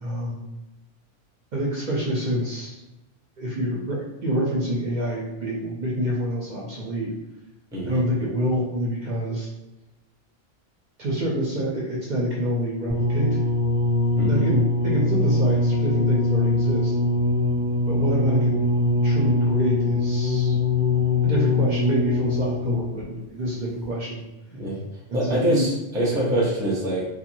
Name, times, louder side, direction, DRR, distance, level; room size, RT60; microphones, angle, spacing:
voice 1, 0.0-0.4 1.5-2.8 3.4-7.1 7.8-9.5 11.0-13.4 14.3-17.0 17.9-18.7 19.0-20.6 21.2-24.2 25.1-25.6 26.1-26.2, equal, 55° right, -5 dB, 0.6 m, -27 dB
voice 2, 7.7-8.0 14.2-14.4 24.5-24.8 25.1-27.1, right 1 dB, 5° right, -5 dB, 0.5 m, -24 dB
sound 1, 12.9-23.0 23.8-23.9, left 2 dB, 25° left, 1.0 m, -22 dB
2.8 x 2.2 x 2.6 m, 1.0 s
omnidirectional pair, 1.1 m